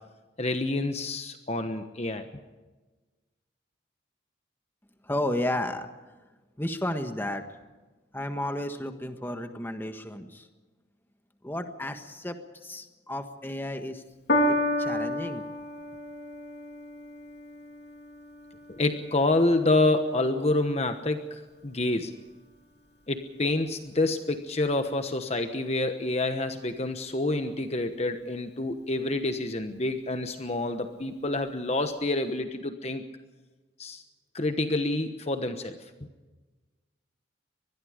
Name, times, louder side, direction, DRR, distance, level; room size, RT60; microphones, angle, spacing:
voice 1, 0.4-2.3 18.7-22.1 23.1-33.1 33.8-34.0 34.3-35.8, left 2 dB, 35° left, 7 dB, 1.2 m, -28 dB
voice 2, 5.0-5.9 6.6-7.4 8.1-10.5 11.4-12.4 12.6-14.0 14.5-15.4, left 1 dB, 10° left, 6 dB, 1.5 m, -32 dB
Piano, 14.3-20.9 21.7-21.8, left 1 dB, 55° left, 3.2 m, -32 dB
24.5 x 21.0 x 5.1 m, 1.2 s
head